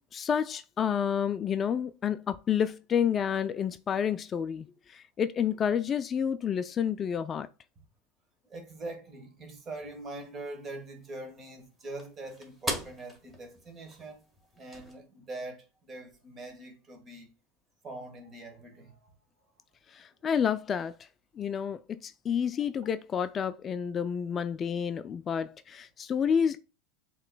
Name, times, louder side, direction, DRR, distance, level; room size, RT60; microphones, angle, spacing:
voice 1, 0.1-7.5 19.9-21.1 21.4-26.6, left 8 dB, 35° left, 0.3 m, -29 dB
voice 2, 8.5-14.2 14.5-17.3 17.8-19.1, right 2 dB, 30° right, 1.4 m, -43 dB
sound 1, 9.6-14.9, equal, 10° right, 1.5 m, -42 dB
7.4 x 3.0 x 2.2 m
hypercardioid pair, 95°, 0 cm